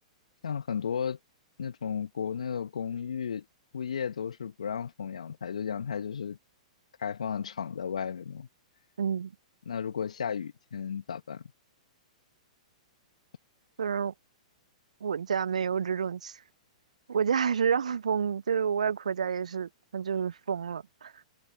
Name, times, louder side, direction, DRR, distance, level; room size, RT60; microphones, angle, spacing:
voice 1, 0.4-1.2 1.6-3.4 3.7-6.4 7.0-8.5 9.6-11.4, left 7 dB, 75° left, 1.1 m, -34 dB
voice 2, 9.0-9.3 13.8-14.1 15.0-16.4 17.1-21.1, right 7 dB, 75° right, 0.3 m, -29 dB
figure-of-eight pair, 110°, 4 cm